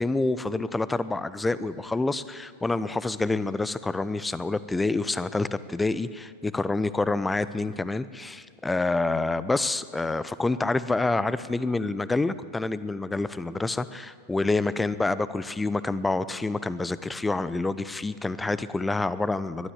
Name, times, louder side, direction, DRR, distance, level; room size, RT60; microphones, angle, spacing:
voice 1, 0.0-19.7, left 3 dB, 10° left, 16 dB, 0.7 m, -27 dB
21.0 x 13.0 x 9.8 m, 2.1 s
figure-of-eight pair, 90°, 0 cm